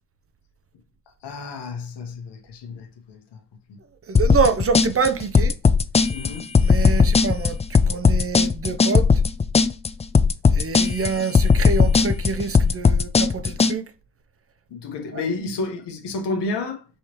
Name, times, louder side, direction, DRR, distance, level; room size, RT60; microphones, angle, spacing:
voice 1, 1.2-2.9 6.1-6.4 14.7-16.8, left 3 dB, 75° left, 1.3 m, -30 dB
voice 2, 4.1-5.5 6.6-9.1 10.5-13.8 15.1-15.3, right 5 dB, 35° right, 0.6 m, -26 dB
sound 1, 4.2-13.7, left 5 dB, 20° left, 0.3 m, -17 dB
5.6 x 3.1 x 3.0 m
supercardioid pair, 65°, 41 cm